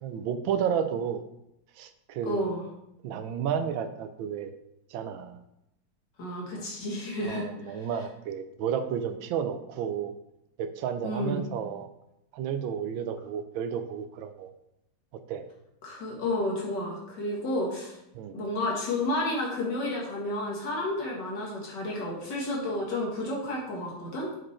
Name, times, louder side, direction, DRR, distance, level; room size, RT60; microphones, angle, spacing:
voice 1, 0.0-1.2 1.8-2.6 3.0-4.5 4.9-5.4 6.6-6.7 7.2-10.1 10.6-11.9 12.3-14.5 15.3-15.4 18.1-18.3, right 8 dB, 85° right, 9 dB, 1.4 m, -32 dB
voice 2, 2.2-2.7 6.2-7.8 11.0-11.4 15.8-18.0 18.3-24.3, left 1 dB, 65° left, -3 dB, 2.3 m, -31 dB
6.1 x 5.1 x 4.2 m, 0.83 s
omnidirectional pair, 2.1 m